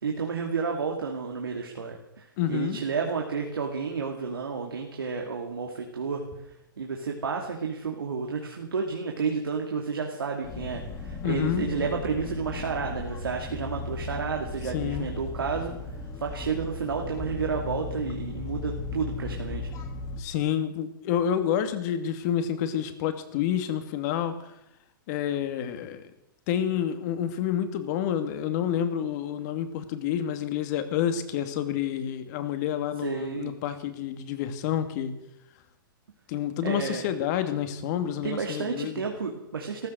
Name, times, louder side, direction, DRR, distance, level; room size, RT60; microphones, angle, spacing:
voice 1, 0.0-6.2 6.8-15.7 16.2-19.7 33.0-33.5 36.6-37.1 38.2-39.9, right 5 dB, 85° right, 1 dB, 2.6 m, -31 dB
voice 2, 2.4-2.8 11.2-11.7 14.7-15.1 20.2-24.5 25.1-26.0 26.5-35.2 36.3-39.0, left 9 dB, 50° left, 9 dB, 2.4 m, -29 dB
sound 1, 10.4-20.2, left 3 dB, 30° left, 3.2 m, -36 dB
14.5 x 14.5 x 6.5 m, 0.86 s
hypercardioid pair, 120°, 12 cm